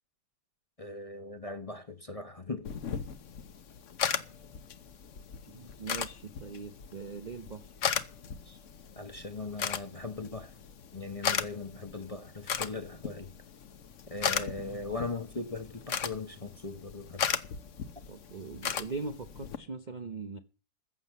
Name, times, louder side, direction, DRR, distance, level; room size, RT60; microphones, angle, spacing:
voice 1, 0.8-3.0 8.5-8.6 9.0-10.5 10.9-13.3 14.1-17.3, left 3 dB, 25° left, 0.7 m, -39 dB
sound 1, 2.6-19.6, left 7 dB, 50° left, 1.1 m, -37 dB
voice 2, 5.5-8.0 18.1-20.4, right 4 dB, 65° right, 0.4 m, -41 dB
15.0 x 7.5 x 7.4 m
omnidirectional pair, 2.0 m